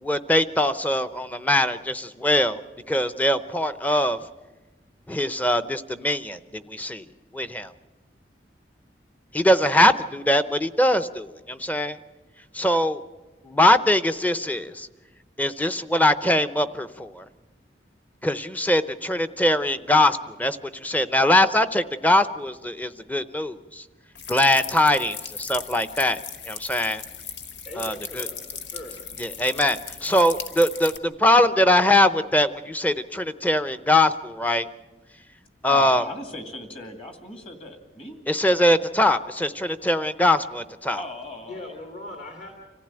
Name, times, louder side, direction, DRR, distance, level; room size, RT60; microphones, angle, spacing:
voice 1, 0.0-2.6 2.9-4.2 5.1-7.1 7.3-7.7 9.3-12.0 12.5-13.0 13.4-14.9 15.4-17.2 18.2-23.8 24.3-26.2 26.5-27.0 27.8-28.3 29.2-34.7 35.6-36.0 38.3-41.0, left 1 dB, 10° left, 13 dB, 0.6 m, -22 dB
sound 1, 24.2-31.0, left 7 dB, 90° left, 1.2 m, -37 dB
voice 2, 27.6-29.0 41.5-42.5, left 1 dB, 50° left, 0 dB, 2.7 m, -40 dB
voice 3, 35.7-38.2 40.9-41.8, left 2 dB, 35° left, 5 dB, 2.4 m, -37 dB
25.5 x 15.5 x 8.9 m, 1.2 s
head